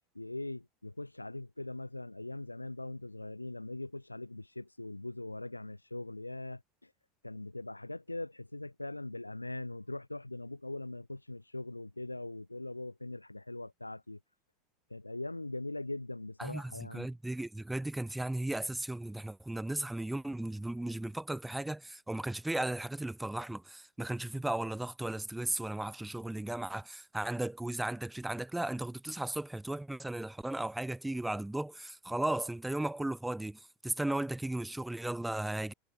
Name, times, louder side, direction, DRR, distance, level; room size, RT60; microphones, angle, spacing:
voice 1, 0.2-6.9 7.2-14.2 14.9-17.1, left 2 dB, 90° left, 3.7 m, -41 dB
voice 2, 16.4-35.7, right 1 dB, 5° right, 6.4 m, -36 dB
figure-of-eight pair, 80°, 0 cm